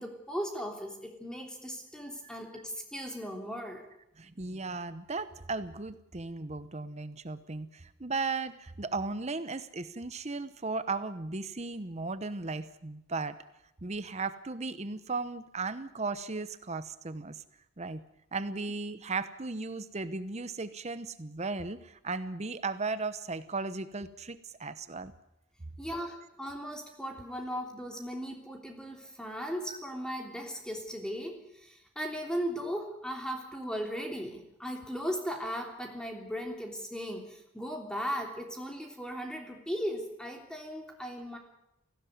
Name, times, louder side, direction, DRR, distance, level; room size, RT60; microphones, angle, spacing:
voice 1, 0.0-3.8 25.8-41.4, equal, 5° left, 2 dB, 3.3 m, -37 dB
voice 2, 4.2-13.4 13.8-17.4 17.8-18.0 18.3-25.1 29.7-29.8, right 3 dB, 30° right, 13 dB, 0.9 m, -36 dB
18.0 x 16.0 x 9.4 m, 0.82 s
head